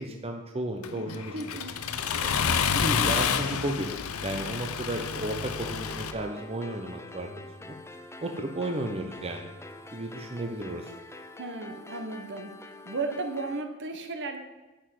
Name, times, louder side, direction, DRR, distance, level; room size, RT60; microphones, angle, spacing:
voice 1, 0.0-1.8 2.0-2.3 2.7-7.8 8.2-9.5 9.9-10.9, right 1 dB, 30° right, 3 dB, 1.0 m, -34 dB
Accelerating revving vroom, 0.8-6.1, left 7 dB, 80° left, 0.8 m, -29 dB
sound 1, 1.2-2.4 3.2-4.4 5.2-6.4 7.2-8.4 9.2-10.4, left 1 dB, 90° right, 3.0 m, -52 dB
voice 2, 1.3-1.7 11.4-12.5 12.8-14.4, right 3 dB, 55° right, 6 dB, 1.6 m, -34 dB
sound 2, 5.6-13.6, left 2 dB, 10° left, 0.8 m, -46 dB
10.5 x 7.2 x 7.8 m, 1.1 s
head